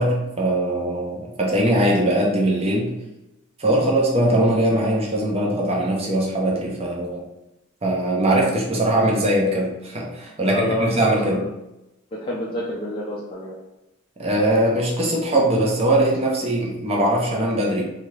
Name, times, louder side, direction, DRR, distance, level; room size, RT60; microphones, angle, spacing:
voice 1, 0.0-3.0 3.6-7.2 7.8-11.5 14.2-17.8, right 1 dB, 30° right, -2 dB, 0.6 m, -21 dB
voice 2, 10.4-11.5 12.1-13.6, left 1 dB, 25° left, -6 dB, 0.4 m, -28 dB
2.8 x 2.4 x 3.1 m, 0.94 s
head